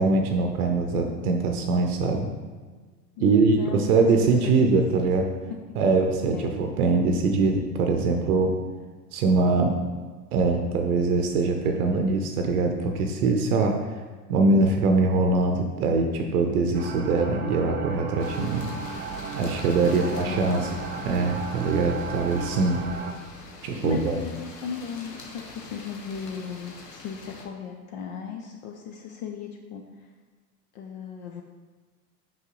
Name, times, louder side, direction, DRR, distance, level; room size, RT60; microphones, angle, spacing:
voice 1, 0.0-2.3 3.2-5.3 5.8-8.5 9.1-9.8 10.3-13.7 14.3-18.7 19.3-20.7 21.0-22.8 23.6-24.2, right 3 dB, 60° right, 3 dB, 0.8 m, -23 dB
voice 2, 3.2-5.0 5.5-5.6 6.3-6.5 19.8-20.5 23.8-30.1 30.7-31.4, left 7 dB, 30° left, 3 dB, 0.3 m, -36 dB
sound 1, 16.7-23.1, right 5 dB, 25° right, 0.6 m, -35 dB
sound 2, 18.2-27.5, left 3 dB, 75° left, 1.2 m, -44 dB
5.5 x 5.3 x 3.8 m, 1.4 s
figure-of-eight pair, 85°, 50 cm